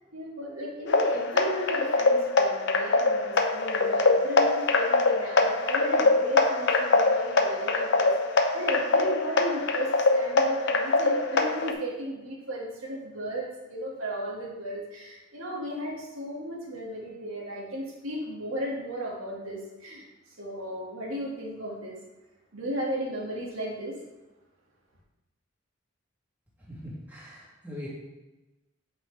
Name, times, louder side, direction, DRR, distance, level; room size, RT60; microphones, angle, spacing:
voice 1, 0.1-20.1 20.4-22.0 22.5-23.9, right 1 dB, 80° right, -5 dB, 2.1 m, -35 dB
sound 1, 0.9-11.7, left 3 dB, 55° left, 0.7 m, -24 dB
voice 2, 26.7-27.9, left 1 dB, 10° right, -8 dB, 2.3 m, -41 dB
8.7 x 5.5 x 3.4 m, 1.1 s
head